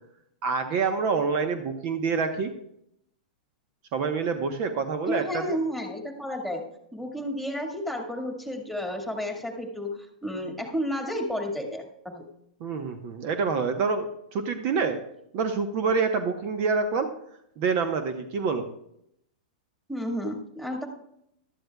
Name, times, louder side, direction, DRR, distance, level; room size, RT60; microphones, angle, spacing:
voice 1, 0.4-2.5 3.9-5.6 12.6-15.0 15.3-17.1 17.6-18.7, right 5 dB, 45° right, 8 dB, 1.0 m, -27 dB
voice 2, 5.1-12.3 19.9-20.9, equal, ahead, 1 dB, 2.0 m, -32 dB
15.5 x 12.0 x 2.3 m, 0.75 s
hypercardioid pair, 115°, 4 cm